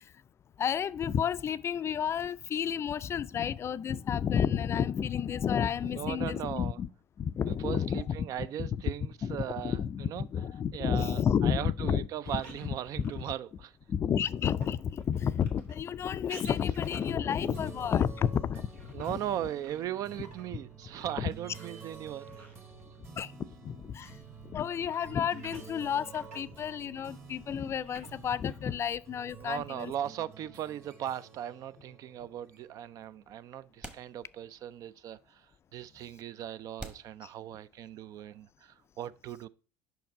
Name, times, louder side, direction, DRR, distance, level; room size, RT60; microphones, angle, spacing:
voice 1, 0.6-6.9 7.2-8.2 8.6-8.7 9.2-12.1 12.3-12.4 13.0-13.2 13.9-18.7 19.1-19.2 23.2-23.3 23.6-24.1 24.5-29.9, left 8 dB, 35° left, 0.3 m, -31 dB
voice 2, 5.8-6.8 7.5-10.3 10.7-13.8 18.9-22.4 24.0-24.1 29.3-39.5, right 11 dB, 50° right, 0.3 m, -38 dB
sound 1, 12.2-23.0 23.2-30.0, right 2 dB, 85° right, 1.6 m, -54 dB
sound 2, 17.0-32.9, right 6 dB, 30° right, 1.4 m, -50 dB
sound 3, 33.8-34.7 35.1-35.2 35.9-36.0 36.8-38.0, right 1 dB, 15° right, 1.0 m, -48 dB
5.3 x 4.6 x 4.5 m
hypercardioid pair, 75°, 8 cm